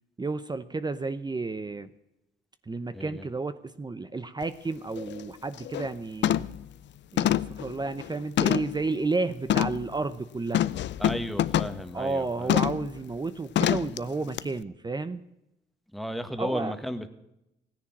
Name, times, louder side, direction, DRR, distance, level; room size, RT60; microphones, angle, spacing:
voice 1, 0.2-1.9 2.7-6.4 7.1-10.7 11.9-15.2 16.4-16.7, right 3 dB, 20° right, 12 dB, 0.7 m, -32 dB
voice 2, 2.9-3.2 11.0-12.6 15.9-17.1, equal, ahead, 8 dB, 1.6 m, -34 dB
sound 1, 4.4-4.5 5.0-5.2 5.6-5.9 6.2-6.6 7.2-8.8 9.5-9.8 10.5-11.8 12.5-12.9 13.5-14.0 14.4-14.5, left 11 dB, 65° left, 0.6 m, -26 dB
16.0 x 10.5 x 7.3 m, 0.87 s
cardioid pair, 90°, 20 cm